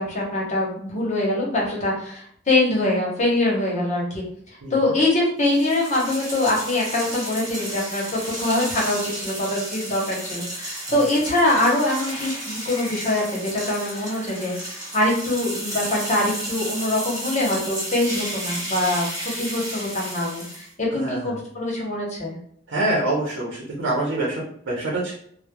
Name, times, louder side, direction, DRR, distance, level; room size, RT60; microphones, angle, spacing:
voice 1, 0.0-4.2 4.7-19.1 19.4-22.3, left 1 dB, 40° left, -3 dB, 0.9 m, -23 dB
voice 2, 4.6-4.9 10.9-11.0 21.0-21.3 22.7-25.1, right 2 dB, 75° right, -4 dB, 0.7 m, -26 dB
sound 1, 5.4-20.7, right 1 dB, 20° right, 1.0 m, -33 dB
3.1 x 2.1 x 2.2 m, 0.63 s
head